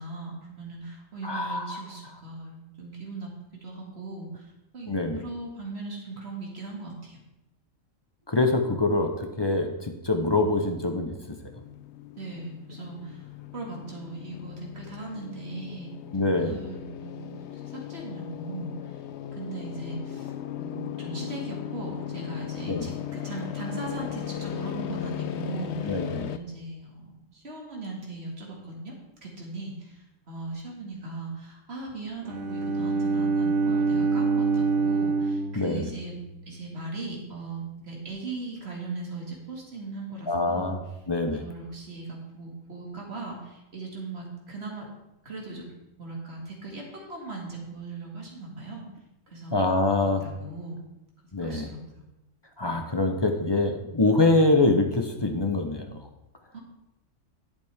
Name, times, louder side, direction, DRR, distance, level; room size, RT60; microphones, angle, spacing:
voice 1, 0.0-3.3 3.6-7.2 12.2-15.9 16.4-18.7 19.3-28.9 29.2-36.2 36.5-40.8 41.3-44.9 45.2-48.9 49.3-49.6 50.0-50.8 51.4-51.8 56.5-56.6, right 3 dB, 50° right, -2 dB, 2.4 m, -39 dB
voice 2, 1.2-1.8 4.9-5.2 8.3-11.1 16.1-16.6 22.7-22.8 25.8-26.3 35.5-35.9 40.3-41.4 49.5-50.2 51.3-51.7 52.6-56.0, left 2 dB, 25° left, 5 dB, 0.7 m, -24 dB
sound 1, 11.5-26.4, left 10 dB, 65° left, 0.8 m, -37 dB
Bowed string instrument, 32.2-36.3, right 4 dB, 75° right, 2.2 m, -26 dB
11.0 x 8.3 x 3.5 m, 0.93 s
omnidirectional pair, 1.5 m